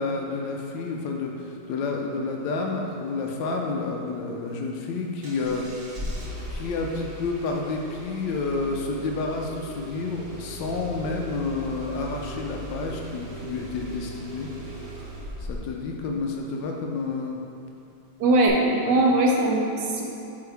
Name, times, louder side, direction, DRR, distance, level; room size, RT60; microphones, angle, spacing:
voice 1, 0.0-5.7 6.5-14.5 15.5-17.4 18.2-18.3 18.9-19.1, left 3 dB, 90° left, 1 dB, 1.3 m, -30 dB
Engine starting, 5.2-15.8 18.5-18.6, right 1 dB, 40° right, 0.9 m, -38 dB
voice 2, 18.2-20.0, right 2 dB, 75° right, -1 dB, 1.3 m, -20 dB
8.5 x 3.8 x 3.3 m, 2.7 s
omnidirectional pair, 1.9 m